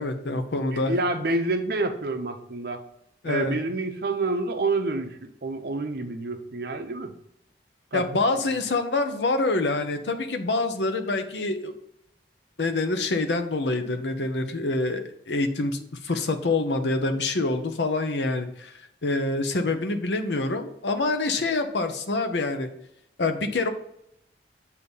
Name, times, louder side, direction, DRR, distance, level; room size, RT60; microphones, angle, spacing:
voice 1, 0.0-0.9 3.2-3.6 7.9-11.7 12.6-18.7 19.0-22.7 23.2-23.7, left 2 dB, 80° left, 8 dB, 0.7 m, -26 dB
voice 2, 0.7-2.8 3.2-7.1 7.9-8.0, right 2 dB, 60° right, 7 dB, 0.7 m, -28 dB
8.1 x 2.8 x 5.3 m, 0.77 s
head